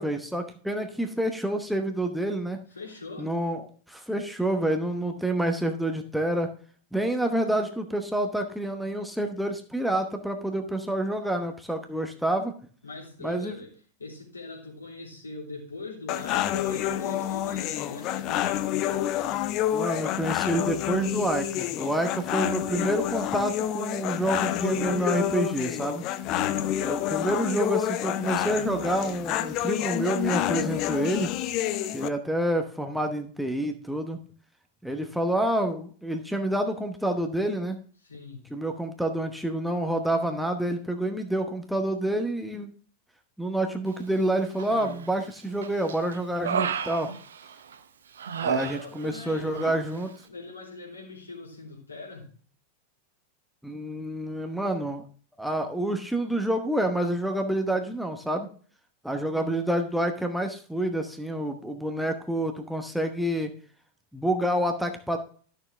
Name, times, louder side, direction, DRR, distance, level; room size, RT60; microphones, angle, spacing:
voice 1, 0.0-2.6 3.2-6.5 6.9-12.5 13.2-13.5 19.7-26.1 26.8-31.3 31.9-34.2 34.8-37.8 38.5-42.7 43.4-47.1 48.4-50.1 53.6-55.0 55.4-58.5 59.0-63.5 64.1-65.2, right 1 dB, ahead, 4 dB, 1.0 m, -28 dB
voice 2, 2.7-3.3 12.8-13.7 14.0-18.8 26.3-26.9 38.0-38.5 48.4-52.3, left 3 dB, 80° left, -3 dB, 3.1 m, -42 dB
sound 1, 16.1-32.1, left 12 dB, 40° left, 0.5 m, -28 dB
Human voice, 44.6-45.2 45.6-47.8 48.2-49.3 49.5-49.8, right 7 dB, 65° right, 0.7 m, -32 dB
12.0 x 6.7 x 3.4 m, 0.43 s
figure-of-eight pair, 90°, 0 cm